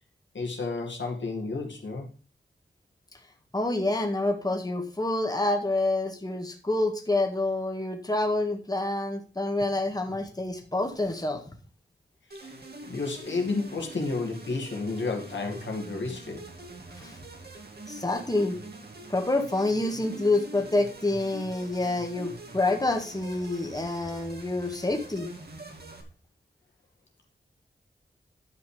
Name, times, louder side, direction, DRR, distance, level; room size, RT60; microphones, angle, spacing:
voice 1, 0.3-2.1 12.3-12.6 12.9-16.4, left 3 dB, 85° left, 1 dB, 2.4 m, -31 dB
voice 2, 3.5-11.4 17.0-17.2 17.9-18.6 19.1-25.3, left 2 dB, 20° left, 3 dB, 1.8 m, -27 dB
sound 1, 12.3-26.0, right 2 dB, 60° right, 2.3 m, -44 dB
10.5 x 5.7 x 5.1 m, 0.37 s
wide cardioid pair, 60°, 19 cm